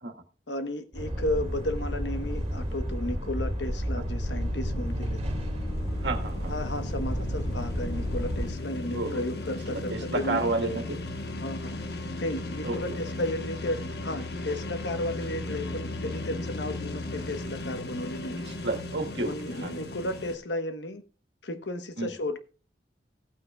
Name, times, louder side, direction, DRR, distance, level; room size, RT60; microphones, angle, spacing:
voice 1, 0.5-5.2 6.5-10.4 11.3-11.8 12.2-18.4 19.3-21.0 21.4-22.4, left 1 dB, 90° left, 1.2 m, -33 dB
sound 1, 0.9-8.5, equal, 35° right, 2.0 m, -31 dB
sound 2, 4.0-20.3, left 2 dB, 65° left, 1.2 m, -36 dB
voice 2, 6.0-6.5 8.9-9.2 9.9-11.0 12.6-13.0 18.4-19.7 22.0-22.1, right 2 dB, 80° right, 1.7 m, -31 dB
16.5 x 9.0 x 2.4 m
head